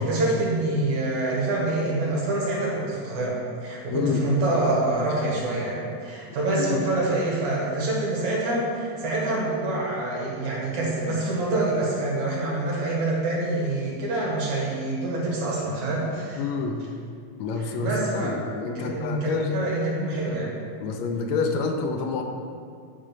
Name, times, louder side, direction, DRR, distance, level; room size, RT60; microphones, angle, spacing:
voice 1, 0.0-16.5 17.6-18.3 18.7-20.5, right 2 dB, 70° right, -4 dB, 3.0 m, -26 dB
voice 2, 3.9-4.3 6.7-6.8 16.4-16.9 17.4-19.5 20.8-22.2, left 4 dB, 75° left, 4 dB, 1.8 m, -28 dB
9.9 x 3.9 x 5.6 m, 2.3 s
omnidirectional pair, 3.5 m